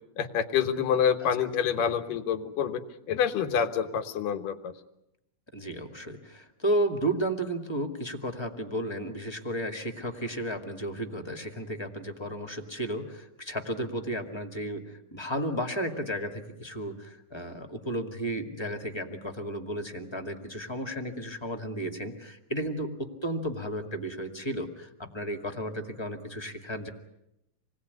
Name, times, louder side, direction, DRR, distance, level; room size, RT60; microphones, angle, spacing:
voice 1, 0.2-4.7, left 8 dB, 85° left, 7 dB, 2.9 m, -27 dB
voice 2, 5.5-26.9, right 1 dB, 10° left, 4 dB, 1.4 m, -33 dB
27.0 x 19.5 x 9.5 m, 0.86 s
omnidirectional pair, 3.7 m